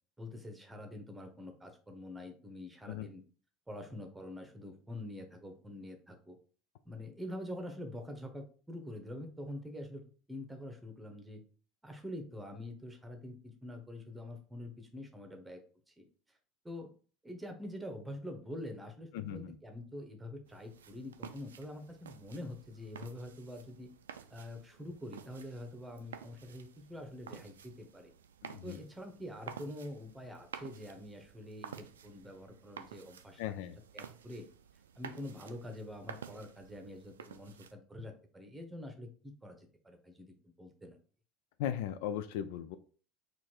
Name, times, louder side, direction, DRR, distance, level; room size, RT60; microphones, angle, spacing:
voice 1, 0.2-3.2 3.7-6.4 6.8-10.0 10.3-11.4 11.8-15.6 15.9-16.0 16.6-16.9 17.2-23.9 24.3-28.1 28.6-33.4 33.9-34.5 34.9-41.0, left 1 dB, 10° right, 5 dB, 1.1 m, -45 dB
voice 2, 19.1-19.6 28.4-28.8 33.4-33.8 41.6-42.8, left 10 dB, 60° left, 12 dB, 0.3 m, -37 dB
sound 1, 20.5-37.7, right 8 dB, 75° right, 0.4 m, -52 dB
4.3 x 2.6 x 4.4 m, 0.40 s
figure-of-eight pair, 70°, 0 cm